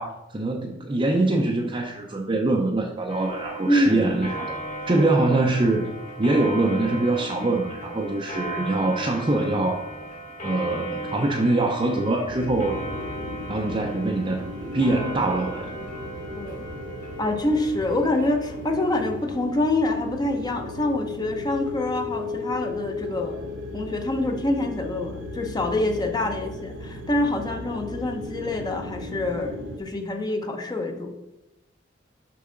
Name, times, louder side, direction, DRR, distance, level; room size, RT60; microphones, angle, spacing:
voice 1, 0.0-4.5 4.9-5.9 6.2-9.8 10.4-12.8 13.5-15.7, right 2 dB, 30° right, 0 dB, 0.6 m, -24 dB
Clock, 3.1-19.2, right 1 dB, 45° left, 1.8 m, -36 dB
voice 2, 3.6-4.1 4.9-5.1 16.3-16.6 17.2-23.4 23.7-31.1, left 1 dB, 20° left, 4 dB, 0.7 m, -26 dB
sound 1, 12.3-29.8, left 2 dB, 70° right, 0.7 m, -36 dB
6.8 x 5.5 x 3.8 m, 0.91 s
head